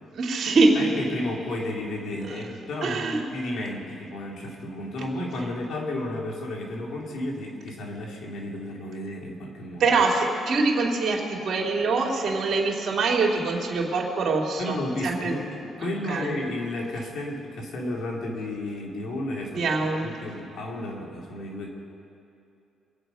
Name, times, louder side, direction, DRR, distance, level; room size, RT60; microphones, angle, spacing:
voice 1, 0.1-0.7 2.3-2.4 2.8-3.3 9.8-14.8 15.0-15.4 15.8-16.3 19.5-20.1, right 3 dB, 55° right, 0 dB, 2.6 m, -24 dB
voice 2, 0.7-9.9 14.6-19.7 20.0-21.7, left 1 dB, 70° left, -1 dB, 2.9 m, -32 dB
24.5 x 8.8 x 5.6 m, 2.7 s
cardioid pair, 90°, 0 cm